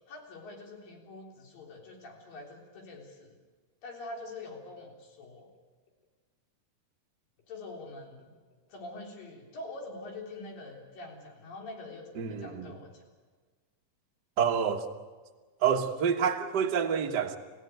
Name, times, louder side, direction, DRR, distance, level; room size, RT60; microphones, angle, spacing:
voice 1, 0.1-3.4 3.8-5.5 7.5-8.4 8.7-13.0, left 2 dB, 70° left, 5.3 m, -45 dB
voice 2, 12.2-12.7 14.4-14.9 15.6-17.4, right 7 dB, 55° right, 1.2 m, -28 dB
28.5 x 16.0 x 9.2 m
omnidirectional pair, 4.1 m